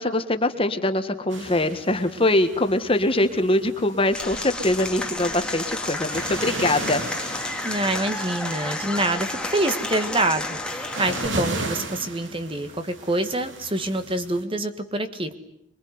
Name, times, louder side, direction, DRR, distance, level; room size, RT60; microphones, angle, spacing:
voice 1, 0.0-7.0, left 1 dB, 30° left, 8 dB, 1.6 m, -23 dB
sound 1, 1.3-14.4, right 2 dB, 70° right, 3.0 m, -36 dB
Applause / Crowd, 4.1-11.3, left 2 dB, 5° left, 1.8 m, -31 dB
voice 2, 7.6-15.3, right 2 dB, 25° right, 9 dB, 1.6 m, -26 dB
25.5 x 23.0 x 9.6 m, 0.77 s
head